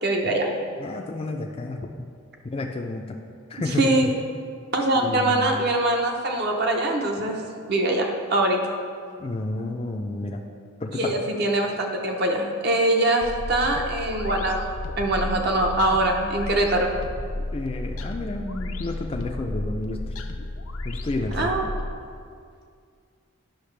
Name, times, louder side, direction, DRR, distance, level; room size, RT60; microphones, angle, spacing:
voice 1, 0.0-0.5 3.6-4.1 4.7-8.6 10.9-14.7 15.0-17.0 21.3-21.6, right 1 dB, 50° right, 1 dB, 0.8 m, -23 dB
voice 2, 0.8-2.1 2.4-3.2 3.5-4.0 5.0-5.5 9.2-10.4 10.8-11.2 17.5-20.1 20.8-21.5, left 2 dB, 25° left, 2 dB, 0.4 m, -31 dB
sound 1, 13.2-21.9, left 2 dB, 85° left, 0.6 m, -33 dB
10.5 x 5.7 x 3.3 m, 2.2 s
head